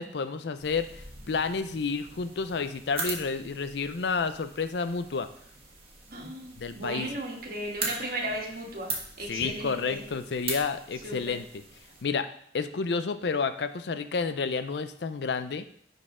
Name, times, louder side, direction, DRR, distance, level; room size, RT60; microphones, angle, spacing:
voice 1, 0.0-5.3 6.6-7.1 9.3-11.6 12.0-12.3 12.5-15.6, left 5 dB, 70° left, 11 dB, 0.5 m, -30 dB
sound 1, 0.6-12.0, right 3 dB, 35° right, 1.5 m, -41 dB
voice 2, 6.1-8.9 9.2-10.0 11.0-11.4, right 1 dB, 55° right, 0 dB, 1.6 m, -35 dB
10.0 x 4.3 x 3.7 m, 0.65 s
head